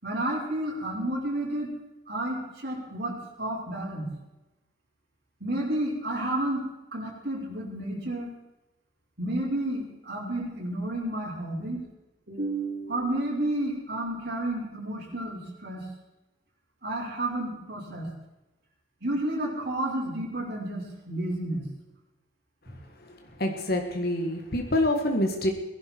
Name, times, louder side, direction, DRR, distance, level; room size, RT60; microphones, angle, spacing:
voice 1, 0.0-1.7 2.1-4.1 5.4-6.6 6.9-8.3 9.2-11.8 12.3-15.8 16.8-18.1 19.0-21.6, right 1 dB, 55° right, -5 dB, 6.0 m, -31 dB
voice 2, 23.4-25.5, left 1 dB, 55° left, 3 dB, 1.8 m, -26 dB
21.0 x 11.0 x 4.7 m, 1.0 s
head